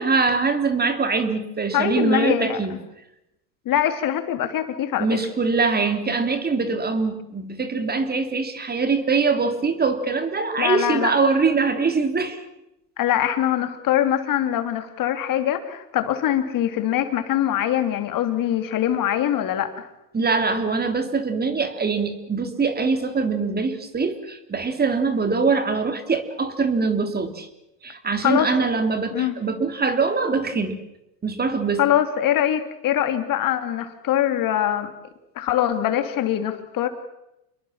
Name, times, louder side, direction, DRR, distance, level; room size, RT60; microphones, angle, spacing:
voice 1, 0.0-2.8 5.0-12.4 20.1-27.5 27.8-30.8 31.2-31.9, right 4 dB, 20° right, 8 dB, 3.3 m, -23 dB
voice 2, 1.7-2.6 3.6-5.1 10.6-11.1 13.0-19.9 28.2-28.5 29.1-29.3 31.8-34.9 35.3-36.9, left 11 dB, 40° left, 8 dB, 3.1 m, -23 dB
28.5 x 21.5 x 7.4 m, 0.87 s
hypercardioid pair, 100°, 48 cm